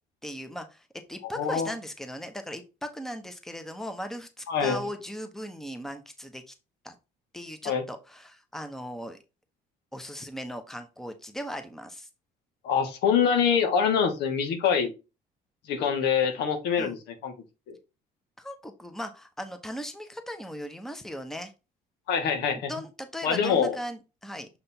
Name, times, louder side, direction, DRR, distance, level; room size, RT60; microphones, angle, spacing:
voice 1, 0.2-6.5 6.8-6.9 7.3-9.2 9.9-12.1 16.8-17.0 18.4-21.5 22.7-24.5, equal, ahead, 7 dB, 1.0 m, -38 dB
voice 2, 1.3-1.7 4.5-4.8 7.6-7.8 12.6-14.9 15.7-17.3 17.7-17.8 22.1-22.7 23.2-23.7, left 7 dB, 80° left, 6 dB, 1.6 m, -25 dB
6.8 x 3.4 x 4.4 m, 0.28 s
cardioid pair, 110°, 17 cm